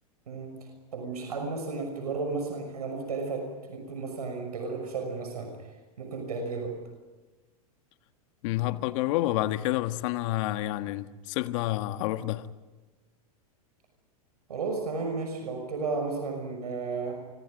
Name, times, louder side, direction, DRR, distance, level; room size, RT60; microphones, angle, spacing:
voice 1, 0.3-0.7 0.9-5.5 6.0-6.8 14.5-17.2, right 4 dB, 90° right, 6.0 m, -33 dB
voice 2, 8.4-12.5, left 16 dB, 55° left, 1.5 m, -29 dB
28.5 x 25.5 x 5.2 m
hypercardioid pair, 115°, 19 cm